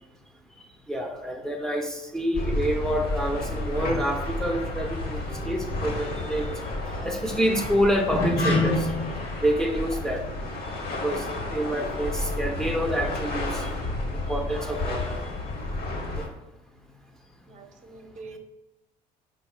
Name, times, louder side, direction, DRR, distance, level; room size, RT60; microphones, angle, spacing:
voice 1, 0.9-6.5 7.0-8.9 9.4-10.2 11.0-11.2 11.5-13.7 14.3-15.2 16.2-16.3, equal, 5° left, 2 dB, 0.6 m, -27 dB
sound 1, 2.3-16.3, left 2 dB, 50° left, 1.2 m, -30 dB
voice 2, 17.5-18.4, right 3 dB, 40° right, 5 dB, 0.7 m, -44 dB
4.2 x 2.4 x 4.0 m, 0.95 s
hypercardioid pair, 60°, 19 cm